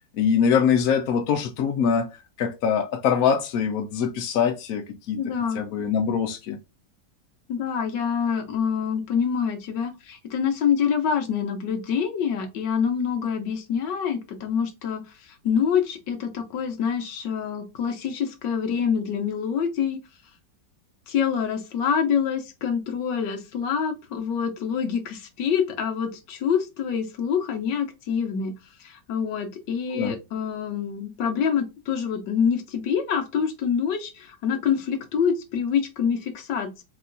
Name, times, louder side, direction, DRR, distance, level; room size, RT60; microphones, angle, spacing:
voice 1, 0.1-2.1 2.4-6.6 29.9-30.2, left 7 dB, 65° left, 0.9 m, -23 dB
voice 2, 5.2-5.6 7.5-20.0 21.1-28.5 28.8-36.8, left 7 dB, 90° left, 1.6 m, -26 dB
4.7 x 3.0 x 2.6 m
omnidirectional pair, 1.9 m